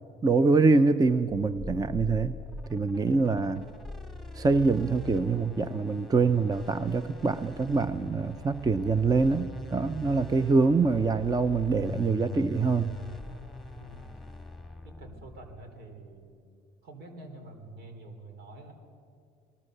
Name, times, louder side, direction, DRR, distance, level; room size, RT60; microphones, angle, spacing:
voice 1, 0.2-2.4 2.7-3.6 4.3-13.0, right 4 dB, 20° right, 12 dB, 0.7 m, -25 dB
sound 1, 1.3-15.9, left 2 dB, ahead, 2.0 m, -43 dB
voice 2, 13.8-14.2 14.8-16.3 16.8-18.7, right 2 dB, 75° right, 5 dB, 4.3 m, -47 dB
28.5 x 20.0 x 6.8 m, 2.4 s
cardioid pair, 110°, 17 cm